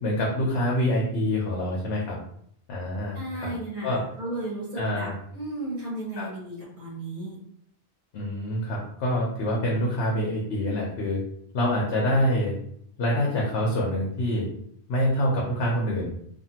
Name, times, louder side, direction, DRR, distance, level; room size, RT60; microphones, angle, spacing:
voice 1, 0.0-2.2 2.7-3.5 3.8-4.0 4.8-5.1 6.2-6.3 8.1-11.2 11.5-12.6 13.0-14.5 14.9-16.1, equal, 75° left, -3 dB, 0.9 m, -26 dB
voice 2, 3.1-7.4, right 1 dB, 50° right, -6 dB, 1.1 m, -34 dB
2.5 x 2.5 x 2.8 m, 0.67 s
omnidirectional pair, 1.2 m